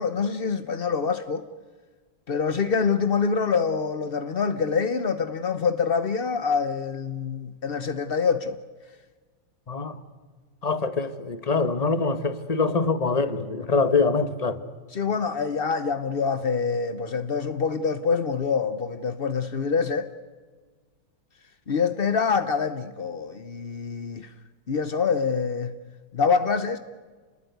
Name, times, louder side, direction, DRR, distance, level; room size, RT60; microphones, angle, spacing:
voice 1, 0.0-1.4 2.3-8.6 14.9-20.1 21.7-24.3 24.7-25.7 26.1-26.8, left 5 dB, 65° left, 0.5 m, -25 dB
voice 2, 9.7-10.0 10.6-14.6, left 4 dB, 25° left, 1.0 m, -24 dB
29.0 x 20.0 x 9.3 m
omnidirectional pair, 2.3 m